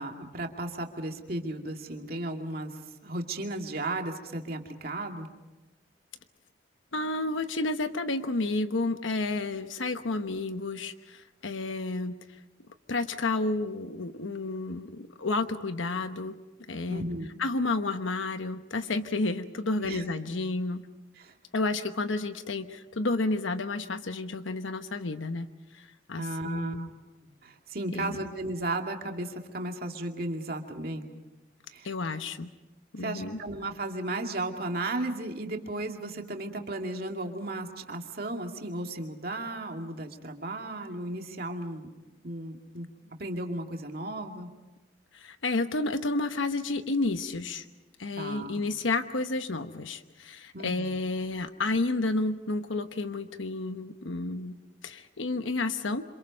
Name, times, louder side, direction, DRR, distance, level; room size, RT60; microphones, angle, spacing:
voice 1, 0.0-5.3 16.9-17.3 19.8-20.0 21.2-21.3 26.2-26.9 27.2-31.1 31.7-31.9 33.0-41.9 42.2-44.5 48.2-48.6 50.5-51.0, right 2 dB, 50° right, 3 dB, 2.3 m, -35 dB
voice 2, 6.9-12.2 12.9-16.4 16.7-17.0 17.4-20.9 21.5-26.9 27.9-28.2 31.8-32.5 32.9-33.4 45.1-47.6 48.0-54.5 54.8-56.0, left 2 dB, 85° left, 9 dB, 1.1 m, -31 dB
28.5 x 26.5 x 5.3 m, 1.1 s
head